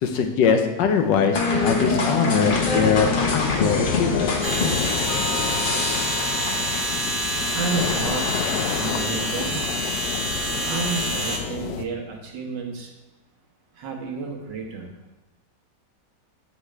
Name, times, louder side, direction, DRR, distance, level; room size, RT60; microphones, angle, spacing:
voice 1, 0.0-4.4, left 6 dB, 90° left, 5 dB, 1.4 m, -22 dB
sound 1, 1.3-7.0, left 3 dB, 55° left, 0.5 m, -25 dB
sound 2, 2.4-11.8, left 8 dB, 70° left, 1.0 m, -30 dB
sound 3, 4.4-11.4, equal, 35° right, 1.2 m, -27 dB
voice 2, 7.5-8.3 8.5-9.6 10.6-12.9 13.8-14.9, right 4 dB, 80° right, 1 dB, 1.8 m, -30 dB
7.6 x 6.1 x 3.3 m, 1.0 s
omnidirectional pair, 1.9 m